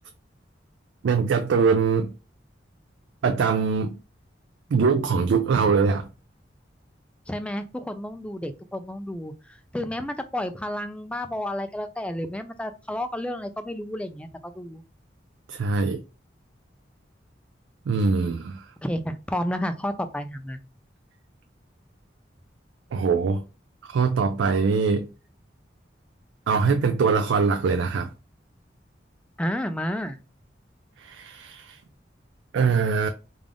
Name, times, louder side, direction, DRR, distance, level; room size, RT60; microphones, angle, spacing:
voice 1, 1.0-2.1 3.2-3.9 4.7-6.1 15.5-16.0 17.9-18.6 22.9-23.4 23.9-25.1 26.5-28.1 31.0-31.8 32.5-33.1, right 5 dB, 90° right, 0.4 m, -22 dB
voice 2, 7.3-14.8 18.8-20.6 29.4-30.2, left 1 dB, 5° left, 0.3 m, -31 dB
3.6 x 2.4 x 3.4 m
head